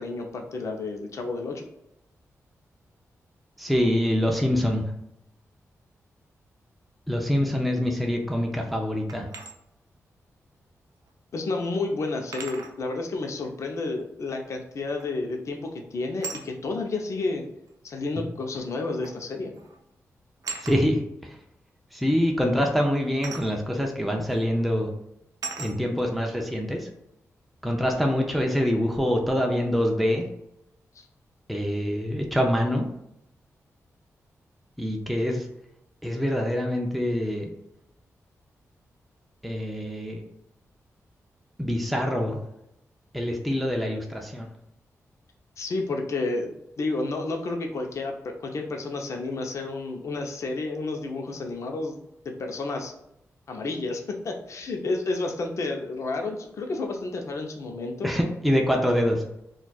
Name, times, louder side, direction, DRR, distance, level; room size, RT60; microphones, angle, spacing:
voice 1, 0.0-1.7 11.3-17.4 17.8-19.5 31.0-31.1 45.6-52.0 52.4-52.9 53.5-58.1, left 3 dB, 60° left, 3 dB, 0.6 m, -31 dB
voice 2, 3.6-4.8 7.1-9.3 20.6-21.4 21.9-24.9 25.6-26.9 27.6-30.2 31.5-32.9 34.8-35.5 36.0-37.5 39.4-40.2 41.6-42.4 43.1-44.5 58.0-59.2, equal, ahead, 1 dB, 0.5 m, -25 dB
sound 1, 9.1-9.5 11.1-11.2 12.3-12.8 15.0-15.3 16.2-16.5 17.7-17.8 19.0-19.2 19.5-19.8 20.4-20.8 23.2-23.5 24.3-24.4 25.4-25.8, right 4 dB, 75° right, 0.5 m, -37 dB
4.1 x 2.4 x 2.3 m, 0.80 s
wide cardioid pair, 120°, 6 cm